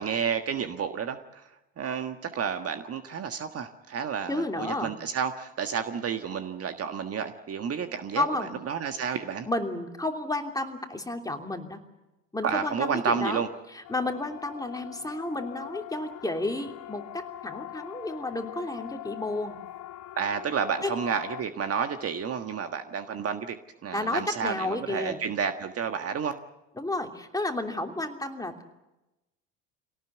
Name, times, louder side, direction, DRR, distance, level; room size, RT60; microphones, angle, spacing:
voice 1, 0.0-1.4 1.8-9.4 12.4-13.5 20.2-23.6 23.8-26.4, right 6 dB, 40° right, 8 dB, 1.6 m, -30 dB
voice 2, 4.3-4.9 8.1-8.5 9.4-11.8 12.3-13.4 13.7-19.6 20.8-21.0 23.9-25.2 26.8-28.7, left 2 dB, 10° left, 4 dB, 3.0 m, -31 dB
Siren, 13.8-21.4, left 15 dB, 50° left, 1.1 m, -42 dB
25.5 x 18.0 x 8.1 m, 0.97 s
hypercardioid pair, 65°, 38 cm